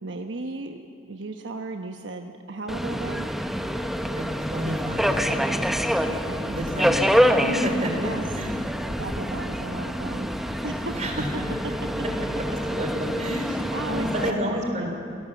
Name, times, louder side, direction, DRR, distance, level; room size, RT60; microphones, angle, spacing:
voice 1, 0.0-0.8 1.1-3.3 6.1-7.0 8.0-8.2 8.9-10.9 13.5-14.9, right 2 dB, 70° right, 4 dB, 1.1 m, -35 dB
Subway metro underground, 2.7-14.3, equal, ahead, 0.9 m, -26 dB
voice 2, 4.5-5.3 6.5-7.9 8.3-8.5 10.9-11.3 12.4-12.5 12.7-15.0, equal, 40° right, 3 dB, 3.5 m, -30 dB
28.0 x 18.0 x 7.2 m, 2.5 s
head